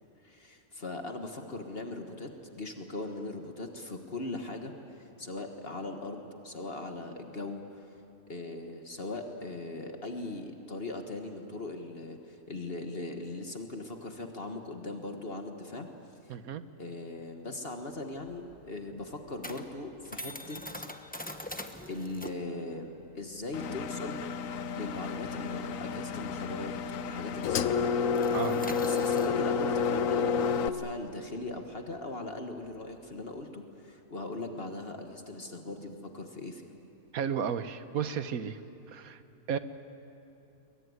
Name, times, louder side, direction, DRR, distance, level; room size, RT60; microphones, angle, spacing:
voice 1, 0.2-2.3 2.6-7.9 8.3-15.9 16.3-16.4 16.8-20.9 21.9-24.3 24.7-26.7 27.0-27.9 28.8-36.7, left 2 dB, 45° left, 4 dB, 1.7 m, -39 dB
voice 2, 16.3-16.6 28.3-28.6 37.1-38.6 38.9-39.2 39.5-39.6, right 7 dB, 85° right, 11 dB, 1.4 m, -33 dB
old cash register open and close with a bing, 17.9-26.9 27.1-27.4 27.7-33.4, left 1 dB, 5° left, 1.0 m, -45 dB
Engine, 23.5-30.7, left 6 dB, 70° left, 1.2 m, -30 dB
22.5 x 22.5 x 9.5 m, 2.8 s
omnidirectional pair, 1.5 m